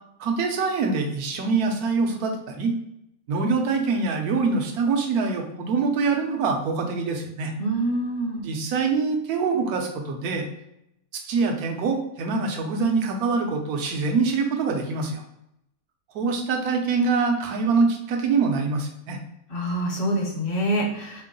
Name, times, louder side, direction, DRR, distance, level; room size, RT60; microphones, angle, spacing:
voice 1, 0.2-2.7 3.3-7.5 8.4-10.5 11.1-15.2 16.1-19.2, right 4 dB, 70° right, 3 dB, 1.1 m, -24 dB
voice 2, 7.6-8.4 19.5-21.2, right 1 dB, 40° left, -2 dB, 1.0 m, -26 dB
4.5 x 2.0 x 3.7 m, 0.81 s
omnidirectional pair, 1.7 m